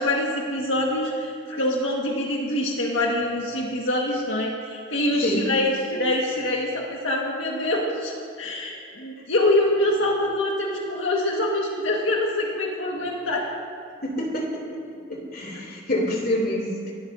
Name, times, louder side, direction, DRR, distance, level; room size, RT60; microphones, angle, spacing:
voice 1, 0.0-13.4, left 1 dB, 80° left, -2 dB, 1.8 m, -25 dB
voice 2, 14.0-14.8 15.1-16.9, left 1 dB, 55° left, -1 dB, 3.2 m, -27 dB
29.0 x 13.5 x 2.8 m, 2.4 s
head